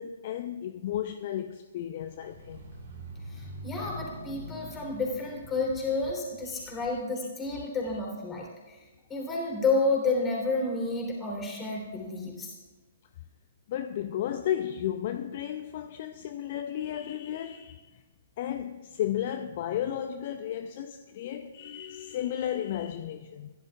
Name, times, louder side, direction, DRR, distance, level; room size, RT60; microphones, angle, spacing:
voice 1, 0.0-2.6 6.5-6.7 7.6-7.7 13.7-18.0 18.4-23.5, left 11 dB, 40° left, 0.4 m, -33 dB
sound 1, 2.0-6.9, equal, 55° right, 2.2 m, -45 dB
voice 2, 3.3-8.8 9.1-12.5, left 3 dB, 15° left, 3.1 m, -30 dB
16.0 x 10.5 x 2.4 m
figure-of-eight pair, 120°, 0 cm